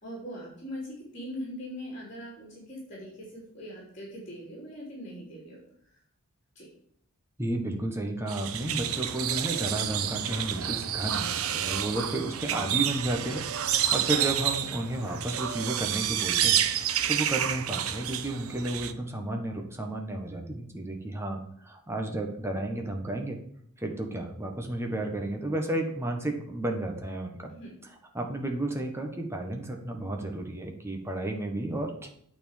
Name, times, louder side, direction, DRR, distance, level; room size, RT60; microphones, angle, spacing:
voice 1, 0.0-5.6 6.5-6.7 27.5-27.7, equal, 30° left, -5 dB, 3.3 m, -41 dB
voice 2, 7.4-23.4 23.8-27.5 28.1-32.1, right 1 dB, 10° right, 2 dB, 1.3 m, -32 dB
sound 1, 8.3-18.9, right 10 dB, 75° right, 0.7 m, -29 dB
9.0 x 4.5 x 7.2 m, 0.68 s
head